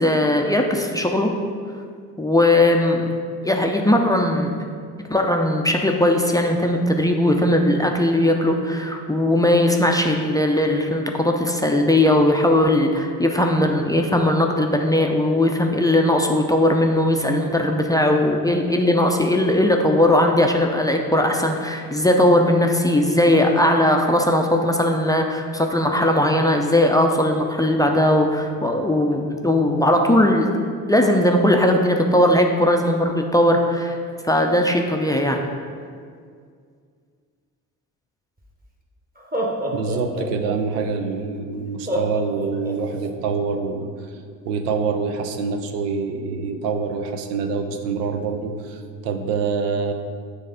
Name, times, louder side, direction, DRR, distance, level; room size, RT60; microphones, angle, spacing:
voice 1, 0.0-1.3 2.2-3.1 3.4-4.5 5.1-34.0 34.2-35.4, left 1 dB, 10° left, 2 dB, 0.4 m, -19 dB
Laughter, 38.4-38.5 39.2-40.9 41.9-43.1, equal, 20° right, 1.0 m, -27 dB
voice 2, 39.7-44.2 44.5-49.9, right 5 dB, 80° right, 7 dB, 0.6 m, -26 dB
6.7 x 3.2 x 5.0 m, 2.1 s
hypercardioid pair, 50°, 48 cm